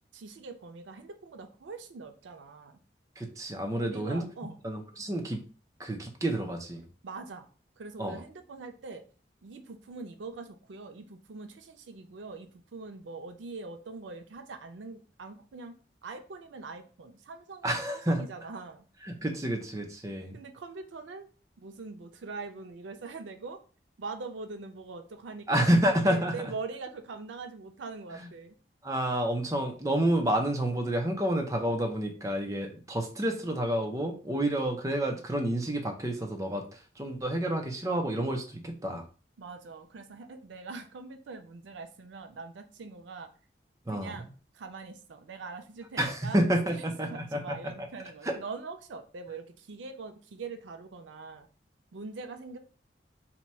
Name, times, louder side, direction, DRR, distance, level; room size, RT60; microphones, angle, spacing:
voice 1, 0.1-2.8 3.8-4.6 7.0-7.5 7.8-9.0 9.4-18.9 20.3-21.3 21.6-23.6 24.0-25.7 26.0-28.6 39.4-43.3 43.9-44.3 44.5-46.4 46.7-51.5 51.9-52.6, right 4 dB, 85° right, 7 dB, 0.5 m, -43 dB
voice 2, 3.2-4.3 4.6-5.4 5.8-6.8 8.0-8.2 17.6-18.2 19.1-20.4 25.5-26.3 28.1-28.3 28.8-39.0 43.9-44.1 46.0-47.6 48.2-48.4, right 1 dB, 20° right, 2 dB, 0.5 m, -29 dB
2.9 x 2.2 x 4.2 m, 0.38 s
head